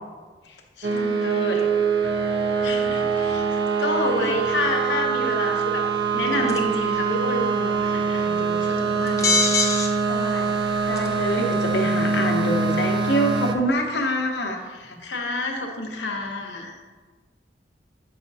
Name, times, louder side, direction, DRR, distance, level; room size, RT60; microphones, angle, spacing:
voice 1, 0.5-1.7 2.6-5.8 6.1-9.5 14.7-16.7, left 2 dB, 90° left, 2 dB, 0.9 m, -29 dB
sound 1, 0.8-13.5, right 5 dB, 65° right, 0.5 m, -24 dB
voice 2, 1.2-1.6 4.2-4.3 10.1-10.5 10.9-14.6 14.9-15.0, equal, 65° left, 2 dB, 0.9 m, -26 dB
sound 2, 6.5-6.8 9.1-9.9 10.5-10.6 11.0-11.3, left 3 dB, 20° left, 0.6 m, -22 dB
7.6 x 5.6 x 2.7 m, 1.4 s
head